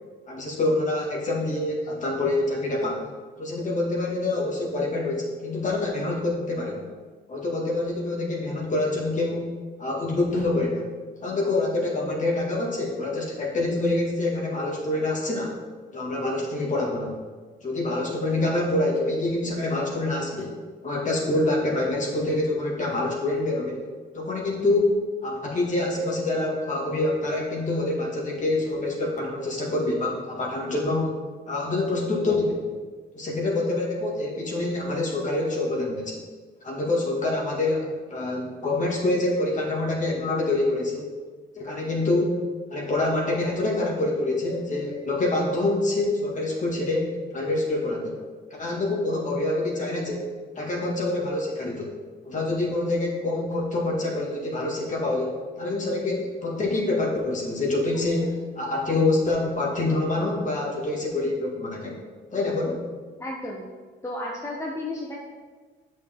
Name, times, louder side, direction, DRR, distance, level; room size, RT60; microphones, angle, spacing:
voice 1, 0.3-3.0 3.4-6.9 7.3-9.5 9.8-10.8 11.2-15.6 15.9-17.2 17.6-20.6 20.8-23.8 24.1-31.1 31.5-32.7 33.1-36.2 36.6-41.1 41.5-42.4 42.7-48.2 48.6-50.3 50.5-51.9 52.2-61.9 62.3-62.9, left 2 dB, 40° left, -2 dB, 2.1 m, -26 dB
voice 2, 63.2-63.7 64.0-65.2, left 1 dB, 15° left, -3 dB, 1.1 m, -32 dB
8.4 x 6.4 x 3.7 m, 1.5 s
cardioid pair, 90°, 20 cm